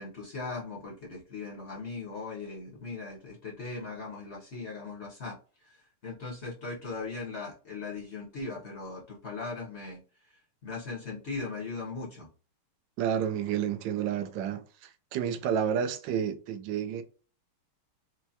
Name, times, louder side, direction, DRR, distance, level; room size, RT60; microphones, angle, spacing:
voice 1, 0.0-5.4 5.6-5.7 6.0-10.0 10.6-12.3, left 3 dB, 50° left, 0.8 m, -39 dB
voice 2, 13.0-17.0, right 8 dB, 70° right, 1.1 m, -30 dB
4.6 x 2.2 x 2.7 m
omnidirectional pair, 2.4 m